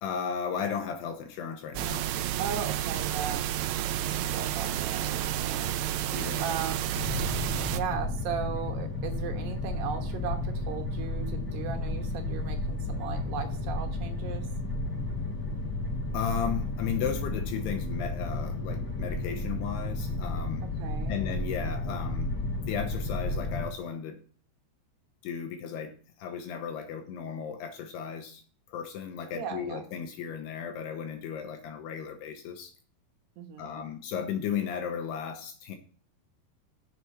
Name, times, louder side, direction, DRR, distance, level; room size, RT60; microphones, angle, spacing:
voice 1, 0.0-2.1 6.1-6.5 16.1-20.7 21.1-22.3 22.7-24.2 25.2-28.4 28.7-32.7 33.6-35.8, left 7 dB, 75° left, 6 dB, 2.6 m, -35 dB
sound 1, 1.8-7.8, right 11 dB, 85° right, 2.2 m, -30 dB
voice 2, 2.4-3.8 4.3-5.7 6.4-6.9 7.7-14.5 20.8-21.2 29.3-29.8 33.4-33.8, right 7 dB, 70° right, 4 dB, 3.0 m, -37 dB
sound 2, 6.9-23.7, left 2 dB, 25° left, 3.9 m, -32 dB
7.9 x 6.8 x 6.8 m, 0.43 s
omnidirectional pair, 5.4 m